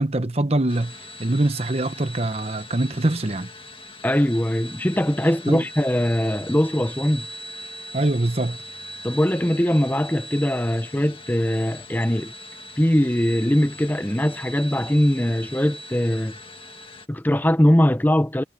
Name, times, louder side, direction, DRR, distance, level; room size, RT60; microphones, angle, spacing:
voice 1, 0.0-3.5 5.5-5.6 7.9-8.6, right 2 dB, 35° right, 1.0 m, -23 dB
sound 1, 0.7-17.1, equal, 30° left, 1.8 m, -40 dB
voice 2, 4.0-7.3 9.0-12.3 12.8-16.4 17.1-18.4, equal, 10° left, 0.8 m, -21 dB
head